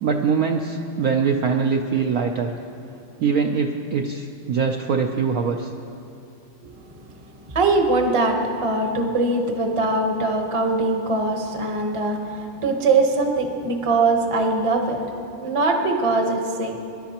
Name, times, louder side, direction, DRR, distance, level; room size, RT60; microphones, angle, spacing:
voice 1, 0.0-2.5 3.2-5.7, right 5 dB, 85° right, 3 dB, 0.7 m, -22 dB
voice 2, 7.5-15.0 15.4-16.8, right 3 dB, 30° right, 3 dB, 0.5 m, -22 dB
24.0 x 11.5 x 2.9 m, 2.6 s
omnidirectional pair, 2.3 m